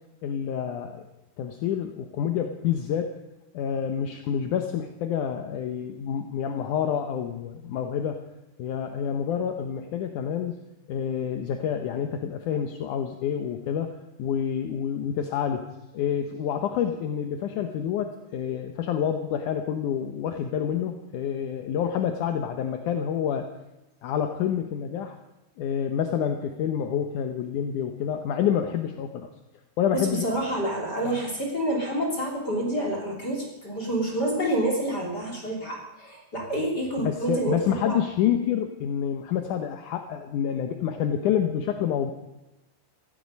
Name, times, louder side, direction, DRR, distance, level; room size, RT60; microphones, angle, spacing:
voice 1, 0.2-1.0 1.4-3.1 3.5-8.2 8.6-10.6 10.9-23.5 24.0-25.2 25.6-29.3 29.8-30.3 31.0-31.2 37.0-42.1, left 8 dB, 75° left, 6 dB, 1.9 m, -28 dB
voice 2, 29.9-38.0, right 1 dB, 25° left, -1 dB, 3.3 m, -28 dB
17.0 x 15.0 x 5.3 m, 0.95 s
omnidirectional pair, 4.7 m